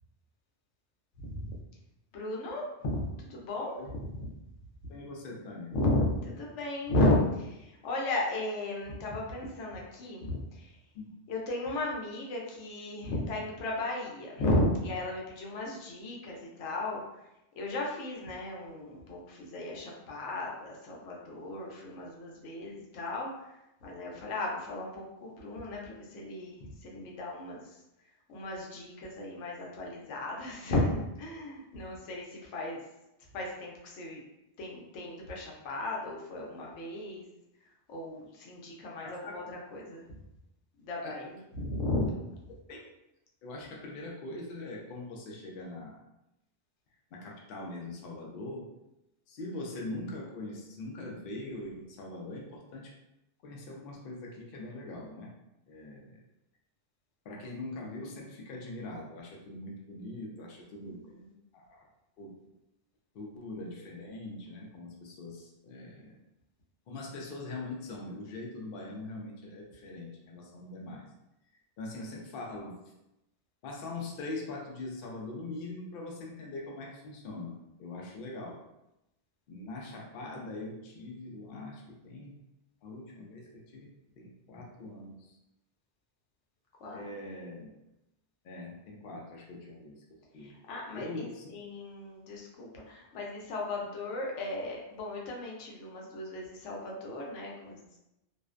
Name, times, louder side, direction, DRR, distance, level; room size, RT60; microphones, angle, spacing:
voice 1, 1.2-1.6 2.1-4.2 5.7-10.8 11.3-17.3 17.6-27.8 28.3-32.8 33.3-34.2 34.6-37.2 37.6-40.2 40.8-42.1 60.8-61.3 86.8-87.0 90.3-98.0, left 1 dB, 90° left, -2 dB, 0.9 m, -35 dB
voice 2, 4.9-5.7 10.9-11.1 39.0-39.4 41.0-41.2 42.5-42.8 43.4-46.0 47.1-48.7 49.3-52.9 53.4-55.3 55.7-56.2 57.2-61.0 61.5-61.8 62.2-62.3 63.1-66.1 66.9-71.0 71.8-72.8 73.6-78.6 79.5-82.4 82.8-83.9 84.2-85.4 86.9-87.7 88.4-90.0 90.3-90.6 90.9-91.5, left 2 dB, 65° left, -1 dB, 0.7 m, -42 dB
2.5 x 2.1 x 2.4 m, 0.89 s
omnidirectional pair, 1.2 m